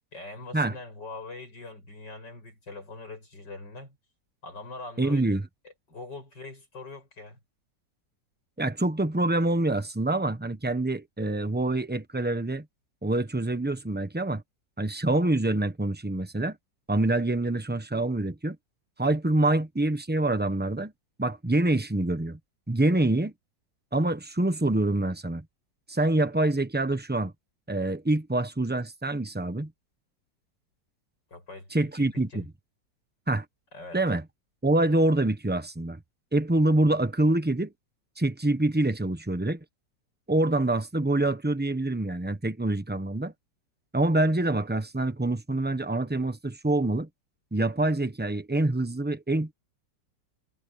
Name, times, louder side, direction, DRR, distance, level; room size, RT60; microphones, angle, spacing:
voice 1, 0.1-4.0 4.4-5.3 5.6-7.4 31.3-32.5 33.7-34.0, left 3 dB, 70° left, 8.7 m, -43 dB
voice 2, 5.0-5.4 8.6-12.6 13.0-14.4 14.8-16.6 16.9-18.6 19.0-20.9 21.2-22.4 22.7-23.3 23.9-25.4 25.9-27.3 27.7-29.7 31.7-32.4 33.3-33.4 33.9-34.2 34.6-36.0 36.3-37.7 38.2-39.6 40.3-43.3 43.9-47.1 47.5-49.5, right 2 dB, 10° right, 0.7 m, -26 dB
omnidirectional pair, 2.0 m